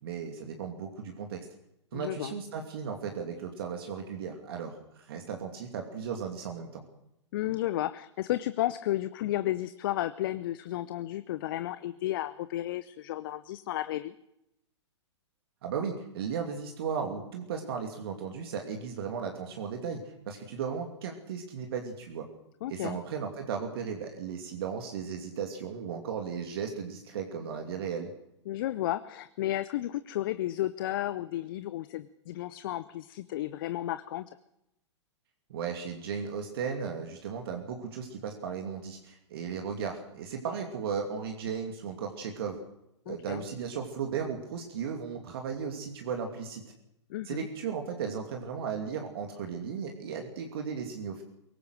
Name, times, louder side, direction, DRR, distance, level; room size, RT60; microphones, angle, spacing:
voice 1, 0.0-1.4 1.9-6.8 15.6-20.0 20.3-22.3 22.7-28.1 35.5-42.6 43.1-46.6 47.2-51.2, right 6 dB, 55° right, 3 dB, 2.7 m, -36 dB
voice 2, 1.9-2.4 7.3-14.1 22.6-23.0 28.5-34.3 43.1-43.4 47.1-47.5, left 14 dB, 45° left, 13 dB, 0.8 m, -33 dB
22.5 x 18.5 x 6.4 m, 0.83 s
figure-of-eight pair, 110°, 15 cm